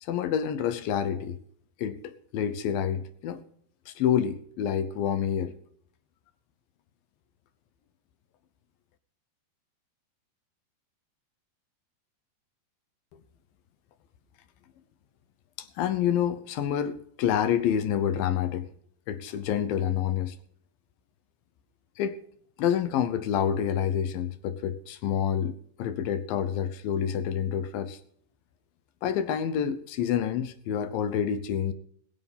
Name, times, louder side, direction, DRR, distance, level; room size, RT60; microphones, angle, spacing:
voice 1, 0.0-1.4 1.8-3.4 3.9-5.6 15.6-18.7 19.1-20.4 22.0-22.2 22.6-28.0 29.0-31.7, left 9 dB, 75° left, 2.4 m, -28 dB
20.5 x 7.1 x 5.4 m
omnidirectional pair, 4.6 m